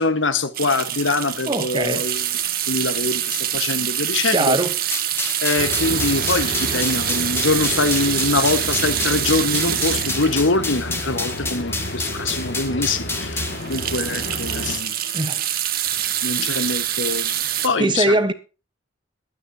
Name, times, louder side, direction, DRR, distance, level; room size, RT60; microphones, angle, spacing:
voice 1, 0.0-2.2 2.7-4.6 5.4-13.4 13.7-14.9 16.2-17.3 17.6-18.2, left 3 dB, 75° left, 1.5 m, -23 dB
sound 1, 0.5-11.8 12.3-12.4 12.7-12.8 13.2-17.7, right 11 dB, 45° right, 1.5 m, -25 dB
voice 2, 1.5-2.1 4.3-4.8 15.1-15.4 17.8-18.3, right 2 dB, 25° right, 1.0 m, -21 dB
sound 2, 4.9-13.6, left 3 dB, 10° left, 1.9 m, -29 dB
sound 3, 5.6-14.8, left 1 dB, 55° left, 2.3 m, -31 dB
22.5 x 9.2 x 2.9 m
head